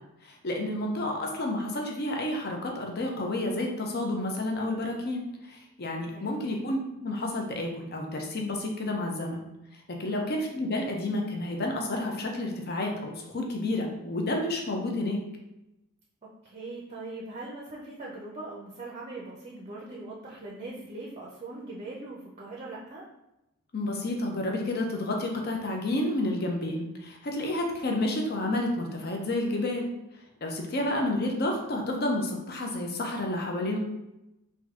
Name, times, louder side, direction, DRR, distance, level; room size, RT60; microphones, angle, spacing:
voice 1, 0.4-5.2 5.8-9.4 10.0-15.2 23.7-29.9 30.4-33.8, left 1 dB, 45° left, 1 dB, 0.6 m, -30 dB
voice 2, 6.1-6.5 10.0-10.4 16.2-23.0 30.9-31.1, right 2 dB, 30° right, -3 dB, 0.5 m, -41 dB
3.6 x 2.6 x 3.6 m, 0.92 s
head